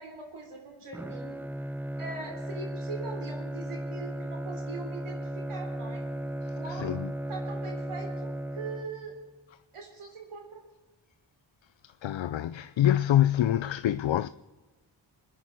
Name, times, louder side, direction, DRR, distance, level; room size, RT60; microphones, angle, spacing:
voice 1, 0.0-1.4 2.0-6.0 6.5-7.0 7.3-9.2 9.7-10.6, right 4 dB, 85° right, 3.4 m, -42 dB
Bowed string instrument, 0.9-9.3, right 1 dB, 5° right, 0.4 m, -36 dB
voice 2, 6.8-7.1 12.0-14.3, left 12 dB, 65° left, 0.5 m, -25 dB
23.5 x 10.5 x 4.5 m
cardioid pair, 50°, 49 cm